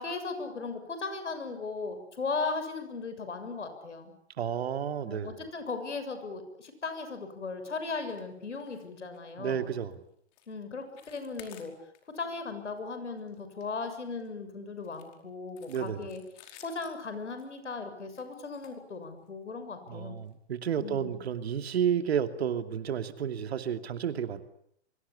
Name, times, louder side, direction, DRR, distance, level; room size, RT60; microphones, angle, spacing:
voice 1, 0.0-4.1 5.0-9.7 10.5-11.7 12.1-16.2 16.6-20.2 20.8-21.2, left 4 dB, 85° left, 8 dB, 7.1 m, -37 dB
voice 2, 4.4-5.3 9.4-9.9 15.7-16.0 19.9-24.4, right 8 dB, 65° right, 9 dB, 2.8 m, -31 dB
sound 1, 8.0-8.3 8.5-8.9 9.1-9.3 9.8-9.9 10.3-10.5 10.8-12.2 12.6-12.8 13.2-14.3 14.8-19.4 20.2-20.3 20.7-20.8 21.2-21.3, left 10 dB, 35° left, 5.0 m, -56 dB
24.5 x 24.5 x 8.6 m, 0.69 s
hypercardioid pair, 130°, 34 cm